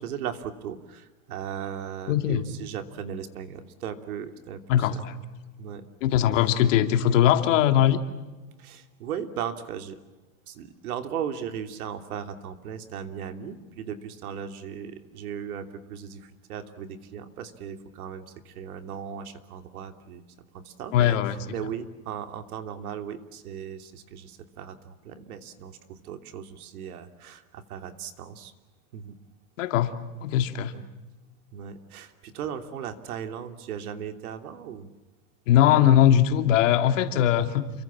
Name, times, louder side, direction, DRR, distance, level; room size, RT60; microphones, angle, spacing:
voice 1, 0.0-5.0 5.6-5.8 8.6-10.0 10.5-20.2 20.5-28.5 28.9-29.2 30.7-30.8 31.5-34.9, right 8 dB, 85° right, 8 dB, 3.0 m, -37 dB
voice 2, 2.1-2.4 4.7-5.1 6.0-8.0 20.9-21.4 29.6-29.9 30.2-30.7 35.5-37.7, left 11 dB, 60° left, 7 dB, 2.6 m, -20 dB
29.0 x 24.0 x 7.4 m, 1.2 s
supercardioid pair, 175°, 43 cm